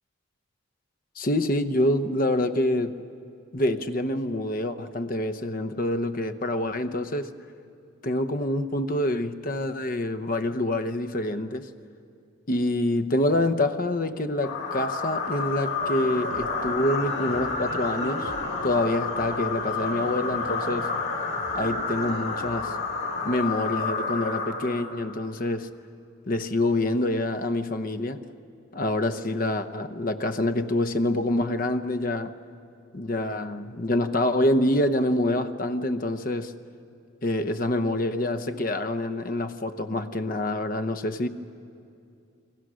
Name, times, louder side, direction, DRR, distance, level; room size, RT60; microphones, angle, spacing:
voice 1, 1.2-3.0 3.5-7.3 8.0-11.7 12.5-18.3 18.6-20.9 21.5-22.8 23.2-25.7 26.3-28.2 28.7-32.3 32.9-36.5 37.2-41.3, left 1 dB, 40° left, 0.8 m, -26 dB
sound 1, 14.4-25.2, left 4 dB, 90° left, 4.3 m, -30 dB
29.0 x 22.5 x 6.3 m
head